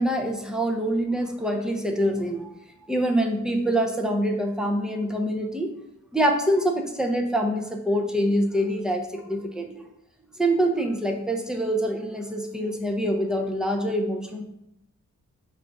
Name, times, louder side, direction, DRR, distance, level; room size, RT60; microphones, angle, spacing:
voice 1, 0.0-2.5 2.9-5.7 6.1-9.9 10.4-14.4, right 1 dB, ahead, 2 dB, 0.5 m, -25 dB
5.1 x 2.5 x 3.3 m, 0.81 s
wide cardioid pair, 105°, 31 cm